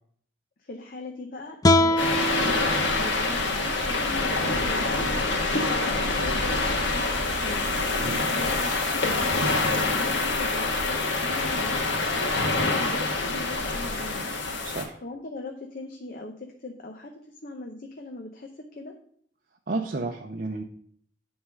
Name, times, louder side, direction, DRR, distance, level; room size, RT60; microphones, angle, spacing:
voice 1, 0.6-5.4 5.7-7.7 8.3-14.3 15.0-17.1 17.4-18.9, left 2 dB, 50° left, 3 dB, 0.8 m, -40 dB
sound 1, 1.6-4.8, left 1 dB, 20° left, 0.4 m, -26 dB
sound 2, 2.0-14.8, left 3 dB, 85° left, 1.5 m, -26 dB
voice 2, 14.6-15.0 19.7-20.6, right 3 dB, 50° right, 2 dB, 0.6 m, -31 dB
9.6 x 3.6 x 6.3 m, 0.62 s
head